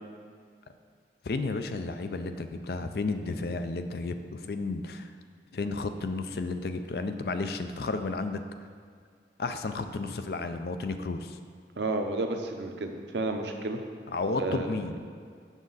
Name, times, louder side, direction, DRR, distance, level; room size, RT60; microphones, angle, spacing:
voice 1, 1.2-5.1 5.5-8.4 9.4-11.4 14.1-15.0, left 3 dB, 60° left, 9 dB, 0.4 m, -32 dB
voice 2, 11.8-13.8 14.4-14.8, right 2 dB, 80° right, 4 dB, 0.7 m, -31 dB
7.4 x 6.5 x 4.0 m, 2.1 s
head